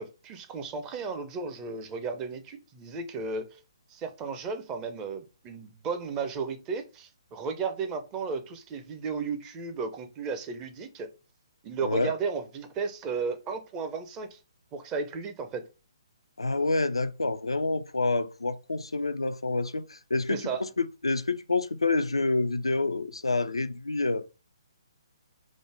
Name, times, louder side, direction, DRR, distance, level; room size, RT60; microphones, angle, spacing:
voice 1, 0.0-3.6 3.9-11.1 11.6-14.4 14.7-15.7 20.3-20.7, right 5 dB, 20° right, 0.5 m, -34 dB
voice 2, 11.8-12.1 16.4-24.3, left 3 dB, 85° left, 0.3 m, -28 dB
5.0 x 2.0 x 3.3 m
figure-of-eight pair, 135°, 3 cm